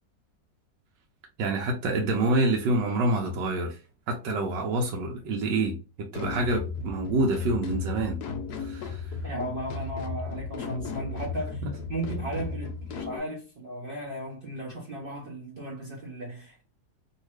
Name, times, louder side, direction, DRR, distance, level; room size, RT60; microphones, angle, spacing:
voice 1, 1.4-3.8 4.1-5.8 6.1-8.2 8.6-9.2 11.6-11.7, right 2 dB, 85° right, 1.3 m, -27 dB
sound 1, 6.1-13.2, left 4 dB, 70° left, 1.0 m, -35 dB
voice 2, 9.2-11.6 11.9-16.6, right 1 dB, 50° right, 0.7 m, -36 dB
2.8 x 2.7 x 3.1 m
omnidirectional pair, 1.9 m